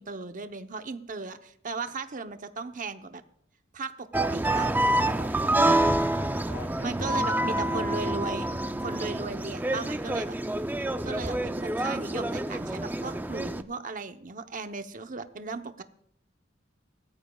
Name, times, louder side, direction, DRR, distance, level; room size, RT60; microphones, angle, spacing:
voice 1, 0.0-3.2 3.7-4.7 6.8-8.5 8.8-10.6 11.0-15.8, right 4 dB, 45° right, 8 dB, 0.9 m, -36 dB
sound 1, 4.1-13.6, right 1 dB, 10° right, 0.5 m, -27 dB
voice 2, 5.1-7.9 9.1-9.3, left 1 dB, 50° left, 3 dB, 2.6 m, -45 dB
22.0 x 13.5 x 2.3 m, 0.67 s
head